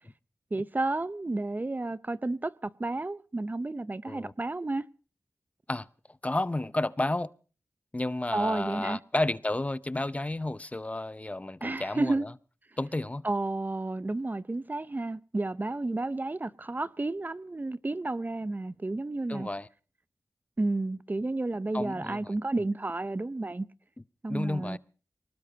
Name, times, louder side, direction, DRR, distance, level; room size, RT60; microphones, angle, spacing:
voice 1, 0.5-4.8 8.3-9.0 11.6-12.3 13.2-19.5 20.6-23.7 24.2-24.8, right 2 dB, 30° right, 0.7 m, -31 dB
voice 2, 6.2-7.3 7.9-12.3 12.8-13.2 19.3-19.7 21.7-22.3 24.3-24.8, left 2 dB, 25° left, 0.7 m, -31 dB
24.0 x 19.5 x 2.8 m
wide cardioid pair, 65°, 6 cm